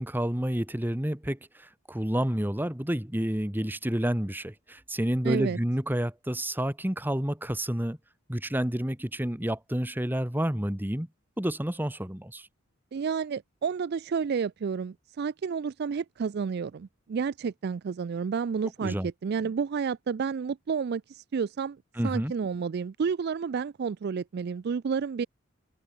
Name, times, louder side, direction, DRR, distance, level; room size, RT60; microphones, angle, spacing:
voice 1, 0.0-8.0 8.3-11.1 11.4-12.5 18.8-19.1 22.0-22.3, equal, 10° right, 1.4 m, -29 dB
voice 2, 5.2-5.6 12.9-21.8 22.0-25.3, right 6 dB, 50° right, 0.4 m, -30 dB
open air
head